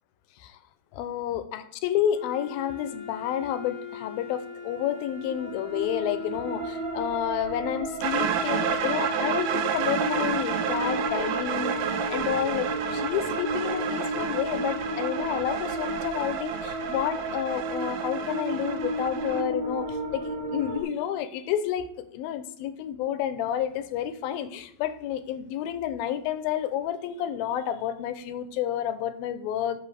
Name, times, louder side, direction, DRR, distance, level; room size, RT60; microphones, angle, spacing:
voice 1, 0.9-11.8 12.1-29.8, left 10 dB, 80° left, 11 dB, 2.4 m, -30 dB
Wind instrument woodwind instrument, 2.1-7.3, left 6 dB, 25° left, 1.5 m, -41 dB
sound 1, 5.3-20.8, right 1 dB, 45° right, 2.9 m, -33 dB
sound 2, 8.0-19.4, right 8 dB, 80° right, 1.8 m, -31 dB
18.0 x 6.5 x 3.4 m, 0.72 s
omnidirectional pair, 4.4 m